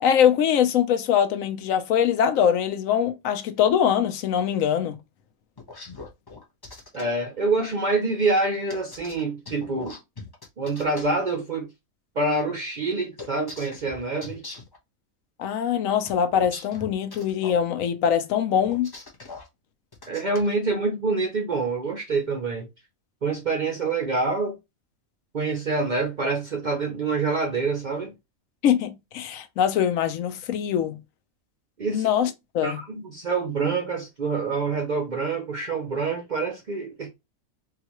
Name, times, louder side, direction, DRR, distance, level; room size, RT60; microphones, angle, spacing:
voice 1, 0.0-5.0 15.4-18.9 28.6-31.0 31.9-32.8, left 9 dB, 75° left, 1.0 m, -23 dB
sound 1, 5.6-7.0 8.7-11.0 13.2-14.8 16.0-17.6 18.6-19.5 19.9-20.5, left 3 dB, 25° left, 0.5 m, -41 dB
voice 2, 6.9-10.0 10.6-11.7 12.2-14.4 20.1-22.7 23.2-24.6 25.3-28.1 31.8-32.1 32.6-37.1, right 3 dB, 55° right, 0.5 m, -26 dB
3.9 x 2.4 x 2.9 m
omnidirectional pair, 1.4 m